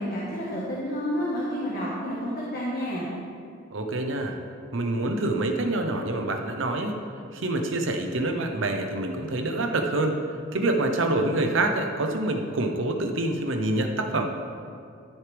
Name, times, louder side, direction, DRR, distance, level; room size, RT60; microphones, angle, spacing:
voice 1, 0.0-3.1, equal, 50° left, -7 dB, 1.5 m, -30 dB
voice 2, 3.7-4.4 4.7-7.0 7.3-10.2 10.5-14.2, right 2 dB, 70° right, 4 dB, 0.8 m, -26 dB
13.0 x 6.3 x 3.4 m, 2.4 s
head